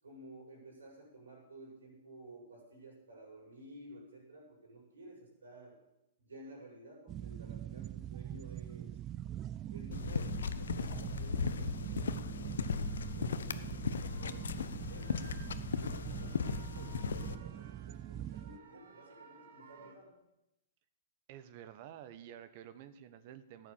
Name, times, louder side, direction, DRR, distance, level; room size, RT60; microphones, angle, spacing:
voice 1, 0.0-5.8 6.3-9.0 9.7-15.2 15.8-20.1, right 1 dB, 85° right, -2 dB, 7.1 m, -53 dB
sound 1, 7.1-18.6, right 11 dB, 30° right, 0.5 m, -43 dB
sound 2, 9.9-17.4, left 6 dB, 75° left, 0.7 m, -37 dB
sound 3, 12.6-19.9, right 7 dB, 65° right, 1.7 m, -60 dB
voice 2, 17.5-18.2 21.3-23.7, right 10 dB, 50° right, 13 dB, 1.1 m, -51 dB
14.0 x 9.2 x 7.2 m, 0.87 s
hypercardioid pair, 115°, 0 cm